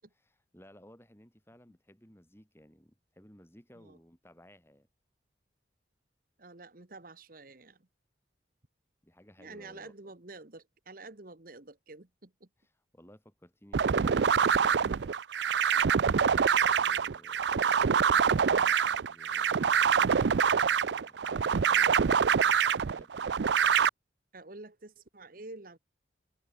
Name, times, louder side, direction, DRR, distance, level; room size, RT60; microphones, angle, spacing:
voice 1, 0.1-4.9 9.0-10.1 12.6-15.2 15.8-23.4, equal, 15° left, 4.8 m, -57 dB
voice 2, 6.4-7.8 9.4-12.5 24.3-25.8, right 2 dB, 50° right, 1.4 m, -48 dB
sound 1, 13.7-23.9, right 7 dB, 70° right, 0.5 m, -25 dB
head